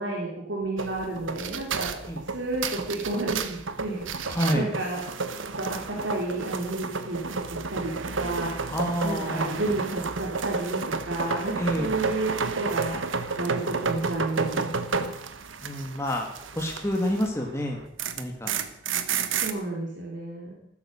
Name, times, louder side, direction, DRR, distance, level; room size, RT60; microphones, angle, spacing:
voice 1, 0.0-1.9 2.3-5.0 5.6-8.5 9.0-13.0 13.4-15.0 19.4-20.6, right 2 dB, 70° right, -1 dB, 3.8 m, -31 dB
sound 1, 0.8-17.4 17.7-19.5, right 5 dB, 85° right, 1.3 m, -31 dB
voice 2, 4.3-4.7 8.7-9.6 11.6-11.9 13.5-13.6 15.6-16.3 16.5-17.8 18.2-18.5, equal, 15° left, 1 dB, 2.3 m, -28 dB
15.0 x 13.5 x 6.6 m, 0.75 s
head